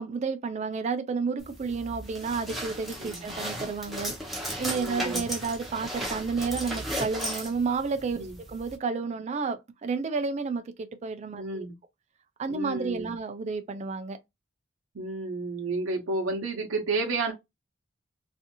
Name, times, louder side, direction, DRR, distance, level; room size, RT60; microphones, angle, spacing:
voice 1, 0.0-4.1 4.6-11.7 12.4-14.2, right 4 dB, 35° right, 0.3 m, -31 dB
sound 1, 1.4-8.8, equal, ahead, 0.7 m, -36 dB
voice 2, 4.7-5.2 8.1-8.4 11.3-11.7 12.5-13.1 14.9-17.3, right 3 dB, 75° right, 0.7 m, -31 dB
2.6 x 2.4 x 2.7 m
head